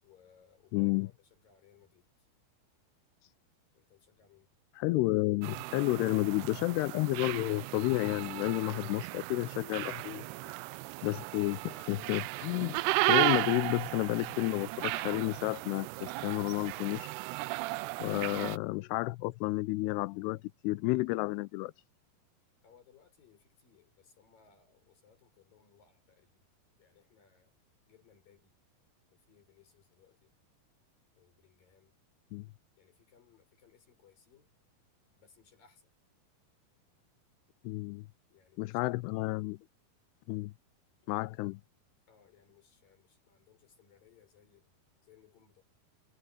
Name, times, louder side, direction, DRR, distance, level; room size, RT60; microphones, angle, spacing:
voice 1, 0.0-2.3 3.7-4.5 10.2-10.6 17.9-18.2 22.6-26.5 26.8-27.6 27.9-28.5 29.1-30.3 31.2-32.0 32.8-34.5 35.2-36.0 38.3-39.0 41.3-41.4 42.1-45.6, left 7 dB, 55° left, 6.9 m, -64 dB
voice 2, 0.7-1.1 3.2-3.3 4.8-10.2 11.0-12.8 13.1-17.1 18.0-21.7 32.3-32.5 37.6-38.1 38.6-39.6 40.3-40.5 41.1-41.6, left 20 dB, 85° left, 2.7 m, -31 dB
sound 1, 5.4-18.6, right 19 dB, 85° right, 2.6 m, -35 dB
omnidirectional pair, 4.7 m